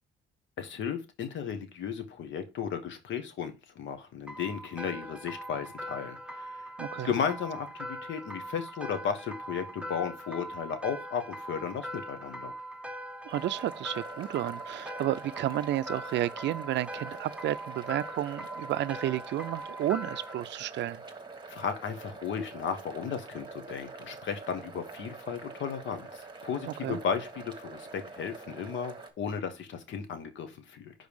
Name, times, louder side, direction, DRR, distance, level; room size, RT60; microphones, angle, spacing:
voice 1, 0.6-6.7 7.0-12.5 21.5-30.9, left 7 dB, 70° left, 1.2 m, -35 dB
sound 1, 4.3-20.4, right 1 dB, 5° right, 0.7 m, -41 dB
voice 2, 6.8-7.1 13.2-21.0 26.7-27.0, right 13 dB, 65° right, 0.4 m, -32 dB
sound 2, 13.3-29.1, right 4 dB, 20° right, 1.4 m, -46 dB
5.2 x 4.0 x 5.0 m
cardioid pair, 90°, 20 cm